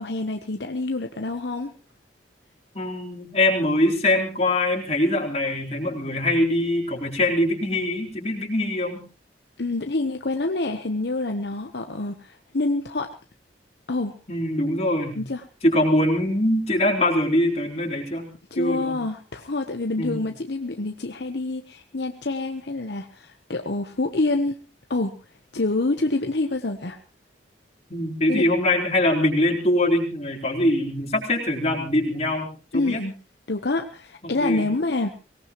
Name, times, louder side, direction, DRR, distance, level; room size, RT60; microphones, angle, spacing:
voice 1, 0.0-1.7 9.6-13.1 13.9-14.1 15.2-15.4 18.5-24.6 24.9-25.1 25.5-27.0 28.3-28.4 32.7-33.1 33.5-35.1, left 2 dB, 65° left, 5 dB, 1.0 m, -27 dB
voice 2, 2.7-9.0 14.3-15.2 15.6-18.3 18.6-19.0 20.0-20.2 27.9-32.5 32.7-33.0 34.2-34.6, left 1 dB, 35° left, 0 dB, 4.3 m, -23 dB
24.0 x 18.5 x 3.1 m, 0.34 s
head